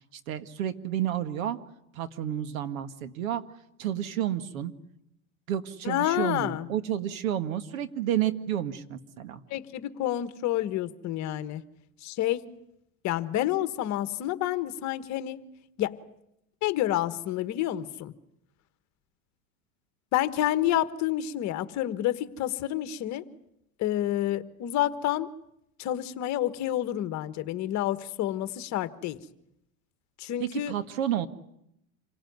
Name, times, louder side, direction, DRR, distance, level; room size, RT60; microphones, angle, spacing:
voice 1, 0.1-1.6 1.9-3.4 3.8-4.7 5.5-9.4 30.4-31.3, right 11 dB, 75° right, 11 dB, 1.9 m, -30 dB
voice 2, 5.8-6.7 9.5-11.6 12.0-12.5 13.0-15.5 15.8-16.0 16.6-18.1 20.1-23.2 23.8-25.3 25.8-29.2 30.2-30.7, left 13 dB, 40° left, 12 dB, 1.4 m, -29 dB
27.0 x 17.5 x 9.5 m, 0.80 s
supercardioid pair, 120°, 42 cm